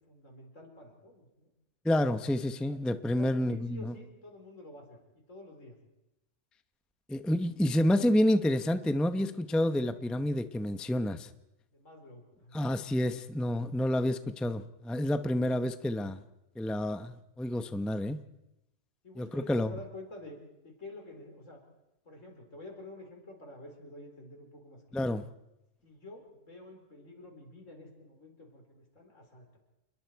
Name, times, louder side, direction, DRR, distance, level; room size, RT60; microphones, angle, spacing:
voice 1, 0.0-1.5 2.7-2.8 3.2-5.8 11.7-12.6 19.0-20.4 20.6-21.6 22.0-25.0 25.8-29.6, left 1 dB, 80° left, 2 dB, 4.9 m, -49 dB
voice 2, 1.8-3.9 7.1-11.3 12.5-16.2 16.6-18.2 19.2-19.7 24.9-25.2, left 1 dB, ahead, 10 dB, 0.6 m, -29 dB
28.5 x 21.5 x 4.7 m, 0.93 s
omnidirectional pair, 1.3 m